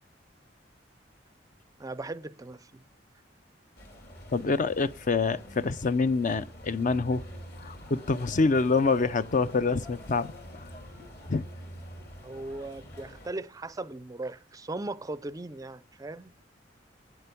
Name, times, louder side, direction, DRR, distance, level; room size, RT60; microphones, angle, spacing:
voice 1, 1.8-2.8 12.2-16.3, right 2 dB, 20° right, 0.5 m, -38 dB
sound 1, 3.8-13.3, equal, 60° left, 3.2 m, -46 dB
voice 2, 4.3-7.2 7.6-10.6 11.3-11.5, left 4 dB, 45° left, 0.5 m, -26 dB
9.0 x 7.9 x 6.9 m
head